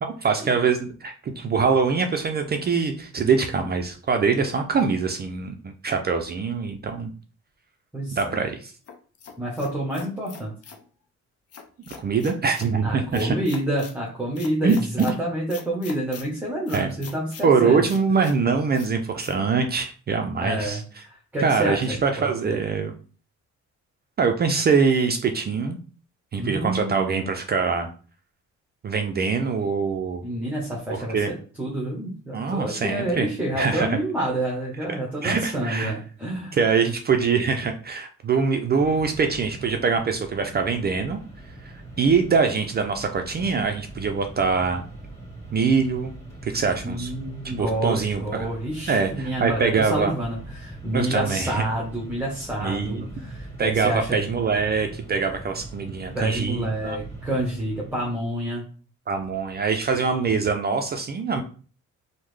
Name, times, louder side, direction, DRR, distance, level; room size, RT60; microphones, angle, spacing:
voice 1, 0.0-7.1 8.1-8.7 12.0-13.4 14.6-14.8 16.7-16.9 17.4-20.8 21.4-22.9 24.2-25.8 26.3-27.9 28.8-30.3 30.9-31.3 32.3-33.3 33.6-34.0 35.2-35.9 36.5-41.2 42.0-44.9 45.5-46.1 46.4-47.1 47.4-48.5 48.9-50.1 50.9-51.7 52.6-53.1 53.6-57.0 59.1-61.4, right 5 dB, 35° right, 5 dB, 0.4 m, -23 dB
voice 2, 7.9-8.4 9.4-10.5 12.8-17.9 20.4-22.6 26.4-27.3 30.2-36.6 46.8-54.2 56.1-58.6, right 1 dB, 5° right, -3 dB, 0.8 m, -28 dB
sound 1, 8.9-10.8 11.5-12.7 13.1-14.0 14.4-15.2 15.5-16.3 16.7-17.5 17.9-18.4 18.7-18.9 19.2-19.3, left 6 dB, 55° left, 0.6 m, -42 dB
Mechanisms, 38.8-58.2, right 1 dB, 20° left, 1.4 m, -41 dB
3.5 x 2.1 x 3.1 m, 0.40 s
cardioid pair, 90°, 30 cm